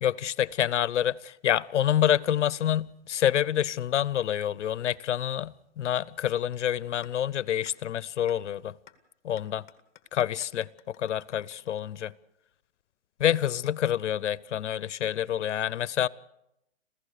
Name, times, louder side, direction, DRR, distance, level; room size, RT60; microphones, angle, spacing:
voice 1, 0.0-8.7 9.2-9.6 10.1-12.1 13.2-16.1, left 10 dB, 85° left, 0.8 m, -27 dB
sound 1, 7.0-7.1 7.7-7.8 8.3-8.4 8.9-9.0 9.4-12.3, left 10 dB, 40° left, 1.6 m, -55 dB
27.0 x 16.0 x 6.6 m
hypercardioid pair, 160°, 35 cm